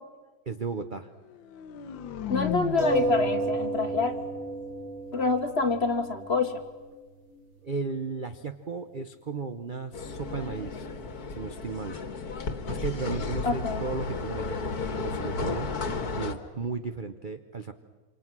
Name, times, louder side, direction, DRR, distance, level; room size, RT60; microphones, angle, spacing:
voice 1, 0.5-1.1 7.6-10.9 11.4-12.0 12.7-15.7 16.2-17.7, right 4 dB, 45° right, 8 dB, 0.6 m, -35 dB
sound 1, 1.3-5.3, left 11 dB, 75° left, 1.7 m, -37 dB
voice 2, 2.3-4.2 5.1-6.6 13.4-13.8, left 4 dB, 35° left, 7 dB, 1.4 m, -26 dB
sound 2, 2.8-7.8 8.5-8.6 8.9-9.0, right 3 dB, 80° right, 4.8 m, -32 dB
sound 3, 9.9-16.3, left 4 dB, 50° left, 2.0 m, -33 dB
27.5 x 26.5 x 6.1 m, 1.3 s
omnidirectional pair, 2.1 m